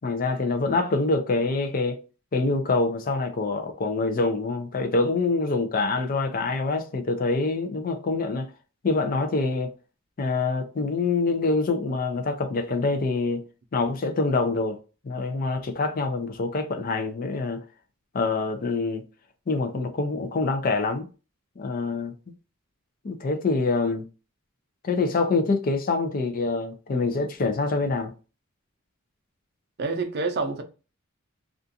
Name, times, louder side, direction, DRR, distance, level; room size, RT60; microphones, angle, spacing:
voice 1, 0.0-2.0 2.3-8.5 8.8-9.7 10.2-13.4 13.7-14.8 15.0-17.6 18.1-19.0 19.5-21.1 21.6-22.1 23.0-24.1 24.8-28.1, left 3 dB, 45° left, 0.4 m, -25 dB
voice 2, 29.8-30.6, right 3 dB, 50° right, 0.5 m, -27 dB
2.5 x 2.3 x 2.6 m
head